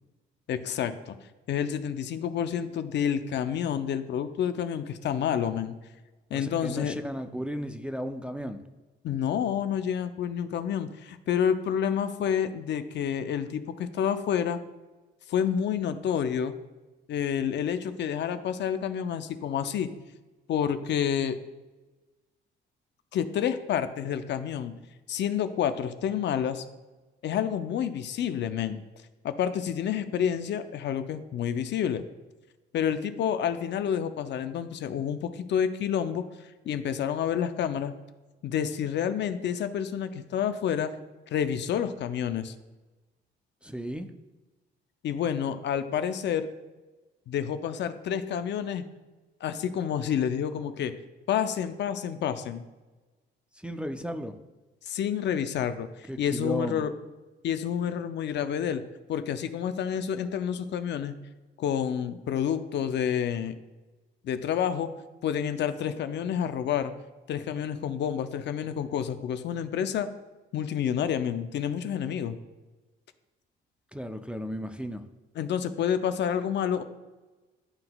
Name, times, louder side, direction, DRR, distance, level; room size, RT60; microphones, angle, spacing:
voice 1, 0.5-1.2 1.5-5.8 6.3-7.0 9.0-14.6 15.3-16.5 17.1-19.9 20.5-21.4 23.1-24.7 25.1-26.6 27.2-28.8 29.2-32.0 32.7-36.3 36.7-37.9 38.4-41.0 41.3-42.5 45.0-46.5 47.3-48.9 49.4-50.9 51.3-52.6 54.8-56.9 57.4-58.8 59.1-61.2 61.6-63.6 64.2-64.9 65.2-66.9 67.3-70.1 70.5-72.4 75.4-76.8, left 8 dB, 65° left, 10 dB, 0.5 m, -29 dB
voice 2, 6.3-8.6 43.6-44.1 53.5-54.4 56.1-56.9 73.9-75.1, equal, 5° right, 6 dB, 0.4 m, -34 dB
11.0 x 3.8 x 2.3 m, 1.2 s
cardioid pair, 90°, 20 cm